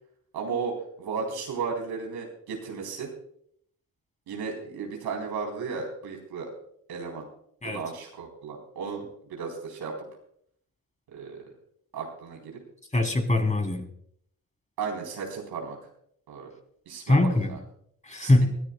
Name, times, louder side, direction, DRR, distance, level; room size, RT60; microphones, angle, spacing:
voice 1, 0.3-3.1 4.3-6.5 6.9-7.3 7.6-10.1 11.1-11.5 11.9-12.6 14.8-15.8 16.3-16.5 16.9-17.2 17.5-17.6 18.2-18.3, right 5 dB, 80° right, 4.0 m, -34 dB
voice 2, 12.9-13.8 17.1-17.6 18.0-18.5, left 2 dB, 20° left, 3.5 m, -22 dB
24.5 x 13.5 x 2.3 m
supercardioid pair, 60°, 38 cm